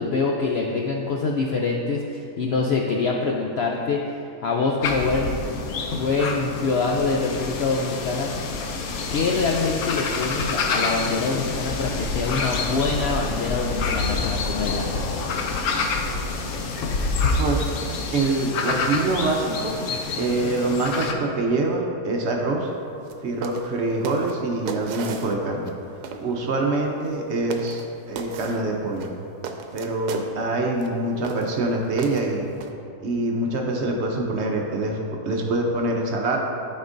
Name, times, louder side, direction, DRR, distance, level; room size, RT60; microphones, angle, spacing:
voice 1, 0.0-5.5 5.9-8.3 9.1-14.9, left 4 dB, 85° left, -1 dB, 0.5 m, -25 dB
sound 1, 4.8-21.1, left 4 dB, 65° left, 0.9 m, -27 dB
voice 2, 17.2-17.6 18.1-19.8 20.2-22.7 23.2-25.7 26.0-29.1 29.7-32.5 33.0-35.0 35.3-36.4, right 2 dB, 55° right, 0 dB, 0.8 m, -25 dB
sound 2, 23.0-23.2 23.4-23.7 24.0-25.7 26.0-26.3 27.0-27.2 27.5-27.9 28.2-28.6 29.0-30.3 30.8-30.9 31.2-31.6 32.0-32.7, right 6 dB, 80° right, 1.1 m, -34 dB
12.5 x 4.3 x 2.6 m, 2.6 s
omnidirectional pair, 1.7 m